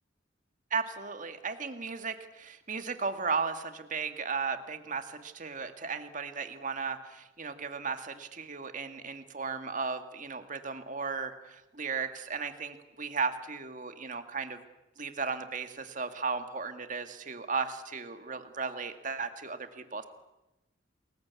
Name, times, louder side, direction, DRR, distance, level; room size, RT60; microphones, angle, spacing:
voice 1, 0.7-14.6 15.0-20.1, right 5 dB, 40° right, 8 dB, 2.0 m, -35 dB
29.0 x 21.5 x 8.4 m, 0.96 s
head